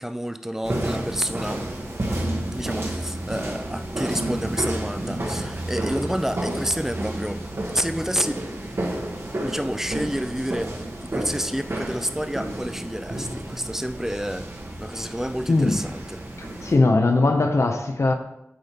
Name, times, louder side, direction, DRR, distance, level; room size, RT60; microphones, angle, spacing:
voice 1, 0.0-1.6 2.5-7.4 7.7-8.4 9.4-14.5 14.8-16.2, equal, 10° right, 0.4 m, -29 dB
sound 1, 0.6-16.8, right 1 dB, 65° right, 1.1 m, -31 dB
voice 2, 15.5-15.8 16.4-18.1, left 2 dB, 80° left, 0.7 m, -20 dB
7.6 x 3.5 x 4.3 m
wide cardioid pair, 55°, 5 cm